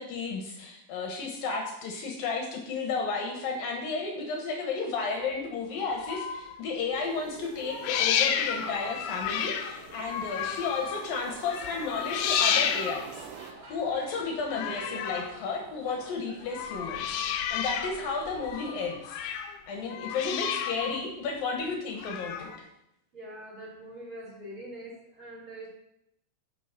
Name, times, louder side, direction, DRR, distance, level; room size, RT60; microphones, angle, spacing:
voice 1, 0.0-19.2 19.7-22.5, left 4 dB, 75° left, 1 dB, 2.1 m, -33 dB
sound 1, 5.8-6.6 7.6-11.1 11.4-13.2 14.4-15.4 16.4-18.0 18.3-19.6 19.9-21.0 22.0-22.6, left 8 dB, 90° left, 2.3 m, -31 dB
sound 2, 6.8-18.9, right 2 dB, 40° right, 1.7 m, -49 dB
sound 3, 6.9-13.5, right 8 dB, 80° right, 3.3 m, -48 dB
voice 2, 23.1-25.8, right 1 dB, 25° right, -5 dB, 4.4 m, -43 dB
10.0 x 6.6 x 5.8 m, 0.82 s
omnidirectional pair, 5.7 m